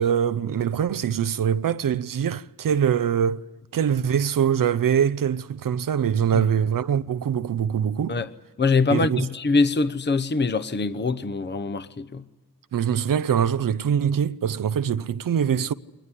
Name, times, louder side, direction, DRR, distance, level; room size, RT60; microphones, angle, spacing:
voice 1, 0.0-3.4 3.7-8.2 8.9-9.3 12.7-15.7, right 8 dB, 65° right, 0.7 m, -23 dB
voice 2, 8.6-12.2, left 4 dB, 30° left, 0.9 m, -23 dB
22.0 x 19.5 x 9.8 m
cardioid pair, 50°, 36 cm